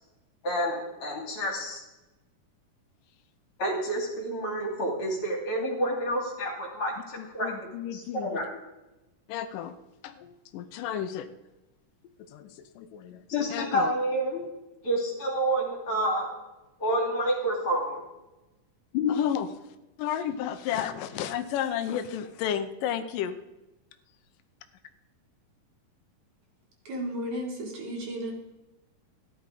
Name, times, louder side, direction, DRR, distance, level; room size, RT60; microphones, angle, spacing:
voice 1, 0.4-1.8 3.6-7.5 7.9-8.4 13.3-14.5 14.8-16.3 16.8-18.0 18.9-19.1, equal, 45° left, 0 dB, 3.2 m, -29 dB
voice 2, 7.2-8.4 9.3-9.8 10.0-11.3 12.3-13.2 13.5-13.9 19.1-19.5 20.0-23.4, left 10 dB, 85° left, 10 dB, 2.4 m, -32 dB
voice 3, 26.8-28.3, equal, 65° right, 0 dB, 3.4 m, -34 dB
13.5 x 11.0 x 4.9 m, 1.0 s
omnidirectional pair, 3.7 m